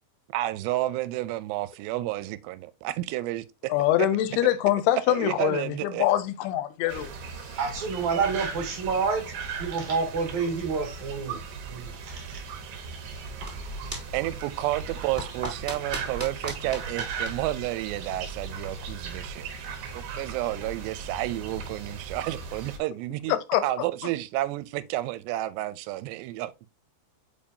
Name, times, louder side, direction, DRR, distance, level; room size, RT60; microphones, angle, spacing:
voice 1, 0.3-3.7 5.1-6.1 14.1-19.5 19.9-23.4 23.6-26.7, right 16 dB, 90° right, 2.7 m, -31 dB
voice 2, 3.7-7.1 23.3-23.6, left 13 dB, 80° left, 2.5 m, -24 dB
sound 1, 6.9-22.8, right 5 dB, 70° right, 2.9 m, -38 dB
voice 3, 7.6-11.4 11.7-12.4, right 5 dB, 50° right, 3.0 m, -29 dB
sound 2, 13.2-18.4, right 2 dB, 5° right, 3.4 m, -39 dB
7.0 x 5.0 x 2.7 m
omnidirectional pair, 4.8 m